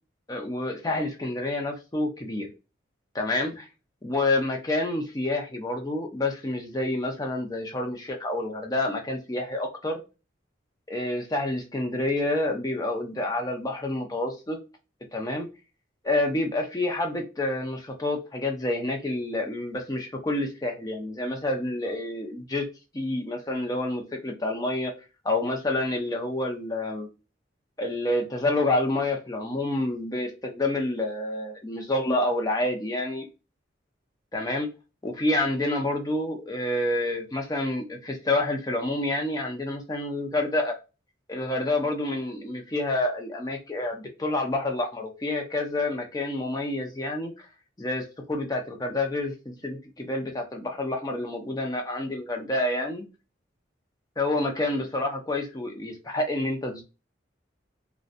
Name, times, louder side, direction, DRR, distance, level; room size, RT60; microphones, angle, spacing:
voice 1, 0.3-2.5 3.1-3.7 4.0-10.0 10.9-14.6 15.1-15.5 16.0-22.6 22.9-24.9 25.2-27.1 27.8-33.2 34.3-34.7 35.0-40.8 41.3-47.5 47.8-53.0 54.2-56.8, left 2 dB, 20° left, 2 dB, 0.5 m, -28 dB
2.6 x 2.1 x 2.5 m, 0.30 s
head